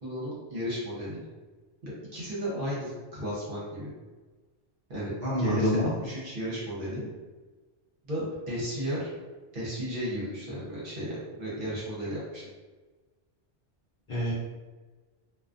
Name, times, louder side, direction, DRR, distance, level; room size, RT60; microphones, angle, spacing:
voice 1, 0.0-1.2 1.8-3.9 4.9-7.1 8.0-9.1 9.5-12.4, equal, 50° right, -7 dB, 0.9 m, -34 dB
voice 2, 5.2-5.9 14.1-14.3, equal, 50° left, -9 dB, 0.6 m, -27 dB
2.4 x 2.3 x 2.4 m, 1.3 s
omnidirectional pair, 1.3 m